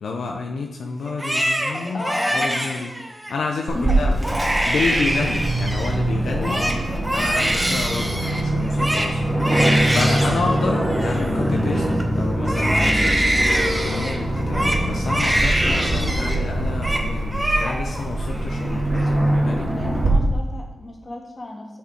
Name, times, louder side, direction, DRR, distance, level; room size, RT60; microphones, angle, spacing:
voice 1, 0.0-2.9 3.3-4.2 4.7-6.7 7.1-9.2 9.9-11.9 12.1-19.7, left 4 dB, 85° left, 2 dB, 0.5 m, -29 dB
Crying sobbing, 1.1-3.3 3.8-6.0 6.3-12.0 12.4-16.4 16.7-17.1 17.3-18.0 18.4-19.0, right 1 dB, 10° right, 0.9 m, -24 dB
voice 2, 1.9-2.6 3.7-4.0 6.4-6.8 19.7-21.7, left 2 dB, 45° left, 0 dB, 1.7 m, -31 dB
Aircraft, 3.7-20.1, right 1 dB, 25° right, 1.7 m, -23 dB
6.7 x 5.6 x 4.4 m, 1.1 s
cardioid pair, 65°, 0 cm